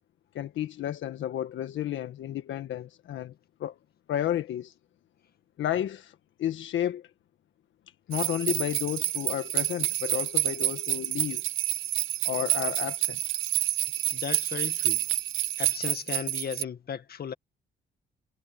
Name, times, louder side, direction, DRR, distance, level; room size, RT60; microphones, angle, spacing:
voice 1, 0.3-3.3 3.6-3.8 4.1-4.7 5.6-7.1 8.1-11.4 12.2-13.2, left 11 dB, 75° left, 1.5 m, -32 dB
sound 1, 8.1-16.6, right 13 dB, 80° right, 1.3 m, -29 dB
voice 2, 14.1-15.0 15.6-17.3, left 8 dB, 50° left, 1.9 m, -35 dB
cardioid pair, 90°, 20 cm